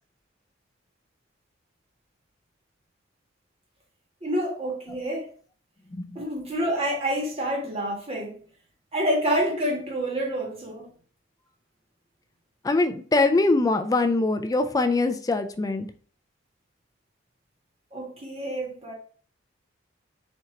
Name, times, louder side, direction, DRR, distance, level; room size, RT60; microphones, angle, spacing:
voice 1, 4.2-5.3 6.1-8.4 8.9-10.9 17.9-18.9, equal, 30° right, 1.4 m, -28 dB
voice 2, 12.6-15.9, left 3 dB, 20° left, 0.3 m, -22 dB
4.5 x 2.8 x 3.7 m
head